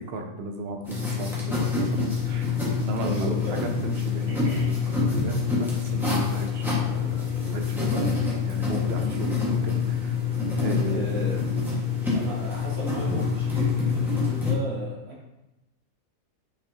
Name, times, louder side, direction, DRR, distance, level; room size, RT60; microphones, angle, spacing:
voice 1, 0.0-10.2 10.6-11.4 12.3-12.4, right 2 dB, 55° right, 3 dB, 0.8 m, -36 dB
sound 1, 0.8-14.5, left 5 dB, ahead, 1.4 m, -26 dB
sound 2, 1.0-2.0 3.0-4.0 5.0-6.0 7.0-7.9, left 2 dB, 80° left, 1.5 m, -44 dB
voice 2, 3.0-3.7 4.3-4.7 10.8-11.4 12.1-15.1, right 1 dB, 70° right, -6 dB, 2.5 m, -35 dB
6.5 x 5.1 x 2.8 m, 0.94 s
omnidirectional pair, 1.5 m